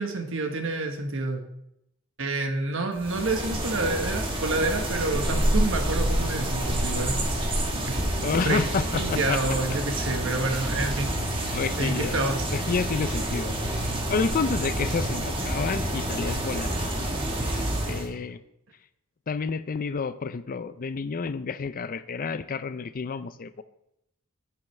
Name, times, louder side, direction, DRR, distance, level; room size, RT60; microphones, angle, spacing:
voice 1, 0.0-1.4 2.2-7.5 7.7-8.0 8.3-11.1 11.8-12.5, right 2 dB, 65° right, 5 dB, 1.3 m, -28 dB
sound 1, 3.0-18.1, right 1 dB, 25° right, 1.4 m, -28 dB
voice 2, 8.2-9.4 11.5-12.2 12.5-13.5 14.1-18.4 19.3-23.6, left 5 dB, 40° left, 13 dB, 0.4 m, -30 dB
10.5 x 7.7 x 3.3 m, 0.80 s
head